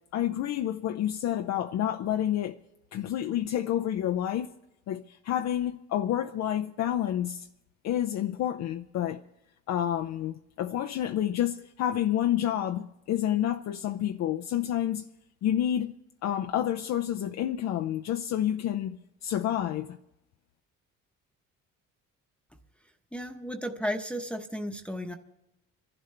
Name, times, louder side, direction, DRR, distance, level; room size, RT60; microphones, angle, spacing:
voice 1, 0.1-2.6 2.9-4.5 4.9-7.5 7.8-9.2 9.7-15.1 15.4-15.9 16.2-20.0, left 11 dB, 60° left, 0.6 m, -29 dB
voice 2, 23.1-25.2, equal, 5° left, 1.0 m, -34 dB
29.5 x 11.5 x 3.3 m
cardioid pair, 100°, 30 cm